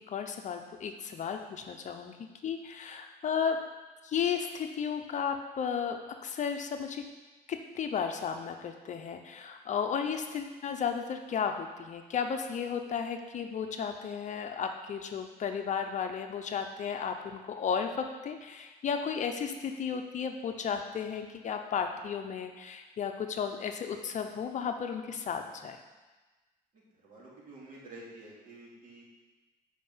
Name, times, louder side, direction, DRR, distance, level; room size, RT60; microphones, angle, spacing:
voice 1, 0.1-3.6 4.0-7.0 7.5-25.8, left 7 dB, 45° left, 6 dB, 0.7 m, -34 dB
voice 2, 26.7-29.0, right 2 dB, 50° right, -5 dB, 2.8 m, -50 dB
7.4 x 5.0 x 5.6 m, 1.2 s
cardioid pair, 110°, 17 cm